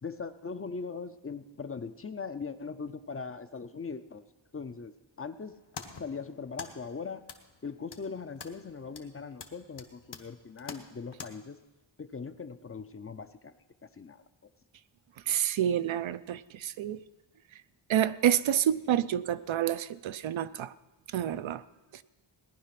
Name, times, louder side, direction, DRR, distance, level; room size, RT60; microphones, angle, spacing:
voice 1, 0.0-4.2 4.5-4.9 5.2-5.5 6.0-7.2 7.6-11.6 12.0-13.5 13.9-14.2, left 5 dB, 30° left, 11 dB, 0.5 m, -40 dB
sound 1, 5.4-11.3, left 5 dB, 60° left, 1.3 m, -48 dB
voice 2, 15.3-17.0 17.9-20.7 21.1-21.6, right 10 dB, 85° right, 14 dB, 0.6 m, -28 dB
18.0 x 10.5 x 5.8 m, 1.1 s
wide cardioid pair, 155°, 45 cm